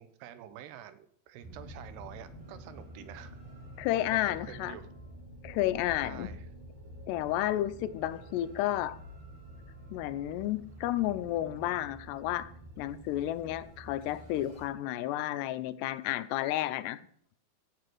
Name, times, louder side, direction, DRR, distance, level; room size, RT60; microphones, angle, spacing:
voice 1, 0.0-3.4 3.9-4.9 6.0-6.5, right 11 dB, 80° right, 12 dB, 3.0 m, -48 dB
sound 1, 1.4-14.6, right 1 dB, 55° right, 5.7 m, -49 dB
voice 2, 3.8-4.8 5.4-6.3 7.1-9.0 9.9-12.5 12.8-17.0, left 14 dB, 85° left, 15 dB, 2.9 m, -31 dB
16.0 x 8.2 x 6.1 m, 0.62 s
omnidirectional pair, 4.7 m